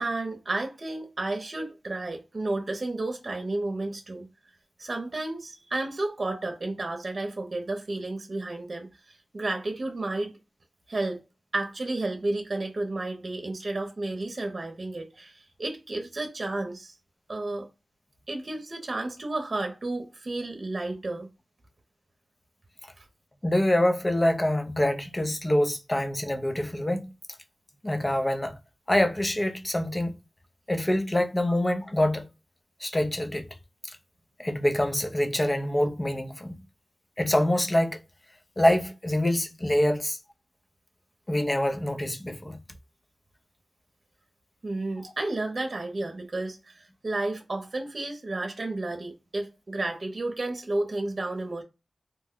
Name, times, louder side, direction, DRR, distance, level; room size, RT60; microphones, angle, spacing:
voice 1, 0.0-4.3 4.8-8.9 9.3-10.3 10.9-11.2 11.5-16.9 17.3-17.7 18.3-21.3 44.6-46.7 47.0-51.6, right 2 dB, 50° right, 0.8 m, -32 dB
voice 2, 23.4-27.1 27.8-28.6 28.9-30.2 30.7-32.3 32.8-33.5 34.4-36.5 37.2-38.0 38.6-40.2 41.3-42.6 45.0-45.1, left 1 dB, 25° left, 0.6 m, -25 dB
3.0 x 2.2 x 3.7 m
wide cardioid pair, 75°, 0 cm